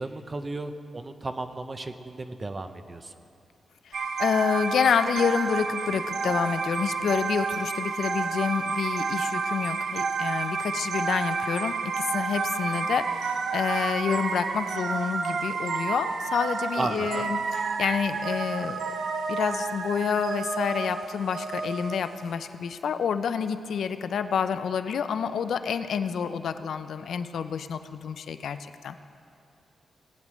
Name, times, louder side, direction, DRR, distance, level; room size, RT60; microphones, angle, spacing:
voice 1, 0.0-3.1 16.8-17.3, right 2 dB, 25° right, 8 dB, 0.5 m, -34 dB
voice 2, 3.9-17.4 17.8-18.8 19.3-29.0, left 7 dB, 75° left, 11 dB, 0.4 m, -28 dB
sound 1, 3.9-22.3, right 4 dB, 70° right, 0.6 m, -30 dB
19.0 x 8.9 x 3.1 m, 2.5 s
wide cardioid pair, 145°, 0 cm